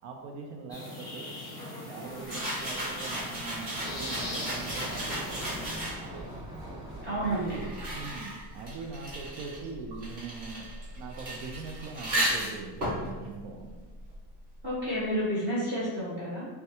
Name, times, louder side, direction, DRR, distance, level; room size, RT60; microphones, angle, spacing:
voice 1, 0.0-1.3 1.8-5.8 7.1-13.8, right 4 dB, 90° right, 2 dB, 0.6 m, -42 dB
sound 1, 0.7-5.8, left 2 dB, 10° left, 0.7 m, -41 dB
sound 2, 2.2-6.2 7.0-14.4, right 1 dB, 40° right, 1.3 m, -35 dB
Run, 2.4-8.0, equal, 5° right, 1.4 m, -42 dB
voice 2, 7.0-7.6 14.6-16.5, equal, 25° right, -9 dB, 0.7 m, -30 dB
4.5 x 2.2 x 2.8 m, 1.3 s
cardioid pair, 155°, 46 cm